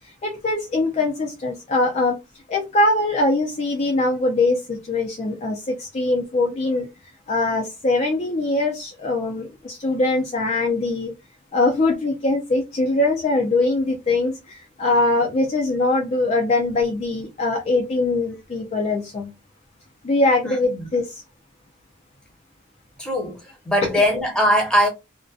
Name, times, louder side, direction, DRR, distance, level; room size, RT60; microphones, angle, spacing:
voice 1, 0.2-2.1 2.5-6.9 7.3-11.1 11.5-19.3 20.0-21.2, left 2 dB, 35° left, 0.4 m, -22 dB
voice 2, 20.4-20.8 23.0-23.4 23.7-24.9, equal, 5° left, 0.7 m, -20 dB
2.5 x 2.1 x 2.3 m
head